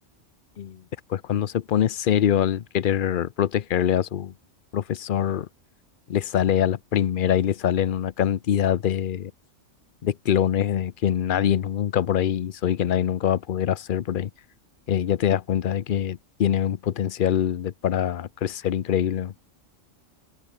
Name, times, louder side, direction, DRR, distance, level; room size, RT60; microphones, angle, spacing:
voice 1, 1.1-4.3 4.7-5.5 6.1-9.3 10.0-14.3 14.9-19.3, left 9 dB, 50° left, 0.7 m, -24 dB
omnidirectional pair, 1.3 m